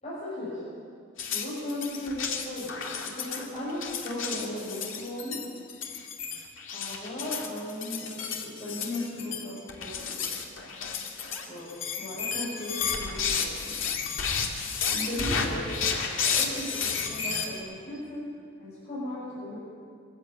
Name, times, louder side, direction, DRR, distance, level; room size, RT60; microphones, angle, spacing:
voice 1, 0.0-0.6 1.3-2.7 3.1-5.4 6.7-10.3 11.5-11.7 11.9-14.0 14.9-16.0 16.2-18.2 18.6-19.6, left 1 dB, 30° left, -11 dB, 6.9 m, -36 dB
sound 1, 1.2-17.5, left 6 dB, 75° left, 2.5 m, -32 dB
24.0 x 15.0 x 9.1 m, 2.4 s
head